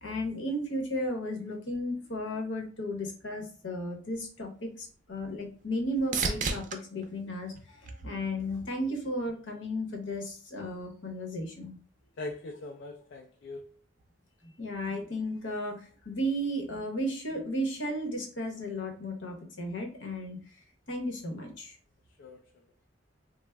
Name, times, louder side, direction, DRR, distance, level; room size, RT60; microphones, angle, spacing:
voice 1, 0.0-11.8 14.6-20.4 20.9-21.8, equal, 85° left, 0.9 m, -34 dB
sound 1, 4.4-8.6 9.1-9.7 17.5-17.6, right 4 dB, 45° right, 0.4 m, -37 dB
voice 2, 12.2-13.6 22.2-22.4, left 2 dB, 70° left, 0.4 m, -41 dB
3.3 x 2.0 x 3.3 m
head